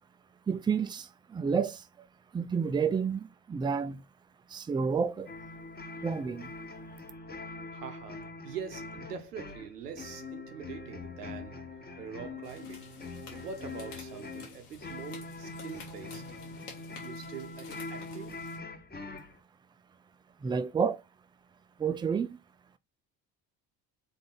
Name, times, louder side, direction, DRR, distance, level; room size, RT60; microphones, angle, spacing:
voice 1, 0.5-2.1 2.3-4.0 4.5-5.3 6.0-6.5 20.4-21.0 21.8-22.4, right 6 dB, 10° right, 0.4 m, -30 dB
sound 1, 5.3-19.4, left 3 dB, 20° left, 1.2 m, -43 dB
voice 2, 7.7-13.0 13.3-16.3 17.0-18.5, right 7 dB, 85° right, 0.8 m, -44 dB
sound 2, 12.4-18.6, left 6 dB, 85° left, 1.5 m, -51 dB
3.9 x 3.5 x 3.9 m
hypercardioid pair, 55°, 46 cm